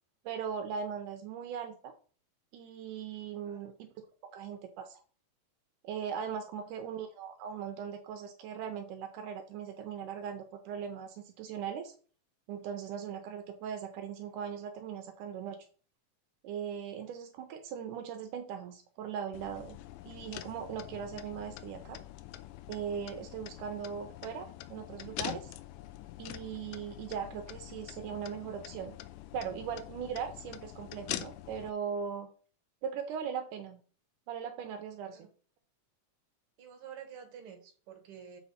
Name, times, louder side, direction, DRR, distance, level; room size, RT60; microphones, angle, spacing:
voice 1, 0.3-1.9 2.5-3.9 4.3-5.0 5.8-11.9 12.5-15.6 16.4-19.8 20.1-22.0 22.7-25.5 26.2-29.0 29.3-32.3 32.8-33.8 34.3-35.3, right 7 dB, 80° right, 2.2 m, -39 dB
sound 1, 19.3-31.7, left 14 dB, 80° left, 2.1 m, -45 dB
voice 2, 36.6-38.4, right 8 dB, 50° right, 2.0 m, -49 dB
7.1 x 5.8 x 4.1 m
omnidirectional pair, 3.8 m